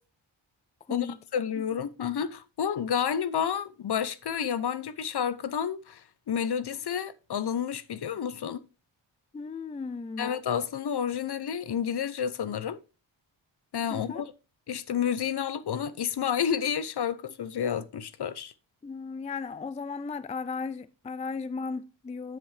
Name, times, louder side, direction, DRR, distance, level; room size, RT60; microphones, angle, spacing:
voice 1, 0.9-8.6 10.2-12.8 13.7-14.3 14.7-18.5, left 8 dB, 55° left, 0.6 m, -30 dB
voice 2, 9.3-10.4 13.9-14.2 18.8-22.4, left 4 dB, 15° left, 0.3 m, -36 dB
7.7 x 7.3 x 3.2 m
wide cardioid pair, 115°, 47 cm